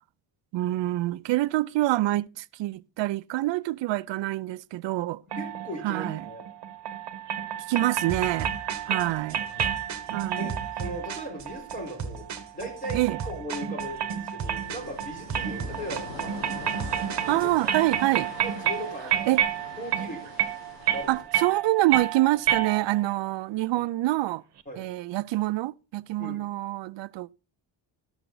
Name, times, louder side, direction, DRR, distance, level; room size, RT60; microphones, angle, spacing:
voice 1, 0.5-5.2 5.8-6.2 7.7-8.5 8.9-9.4 10.1-10.6 12.9-13.2 17.3-18.3 19.3-19.4 21.1-24.4 24.8-27.3, right 17 dB, 80° right, 0.5 m, -26 dB
sound 1, 5.3-23.2, right 10 dB, 65° right, 1.1 m, -31 dB
voice 2, 5.4-6.4 8.9-9.7 10.4-12.3 12.5-16.5 17.2-17.5 18.4-19.3 19.8-20.5 20.9-21.1 23.7-23.8 24.7-24.8 26.2-26.5, equal, 20° left, 4.3 m, -38 dB
sound 2, 8.1-17.6, right 5 dB, 40° right, 1.4 m, -37 dB
sound 3, 14.6-21.2, left 3 dB, 70° left, 4.0 m, -43 dB
12.0 x 7.0 x 3.9 m
cardioid pair, 145°, 43 cm